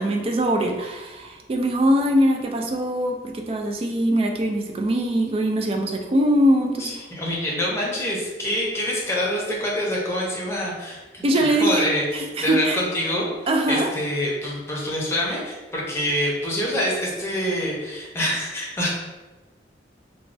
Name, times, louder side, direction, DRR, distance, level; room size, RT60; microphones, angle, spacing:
voice 1, 0.0-6.9 11.2-11.8 12.1-12.8 13.5-13.9, right 1 dB, 30° right, 3 dB, 0.3 m, -22 dB
voice 2, 6.8-11.2 11.5-13.3 13.7-18.9, left 1 dB, 15° left, -4 dB, 0.7 m, -26 dB
3.1 x 2.2 x 2.6 m, 1.2 s
head